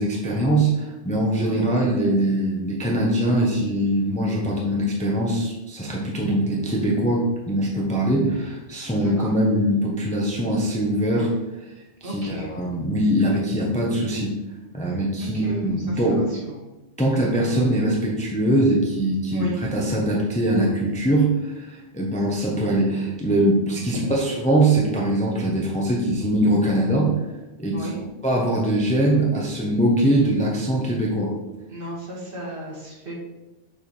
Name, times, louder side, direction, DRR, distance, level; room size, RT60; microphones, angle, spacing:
voice 1, 0.0-11.3 12.0-14.4 14.7-16.2 17.0-27.1 27.6-27.9 28.2-31.3, right 1 dB, 5° left, -3 dB, 0.8 m, -22 dB
voice 2, 9.0-9.3 12.0-12.8 15.2-16.7 19.3-19.6 27.7-28.0 31.7-33.2, right 1 dB, 50° right, -6 dB, 2.4 m, -35 dB
7.0 x 3.4 x 4.3 m, 1.0 s
omnidirectional pair, 1.2 m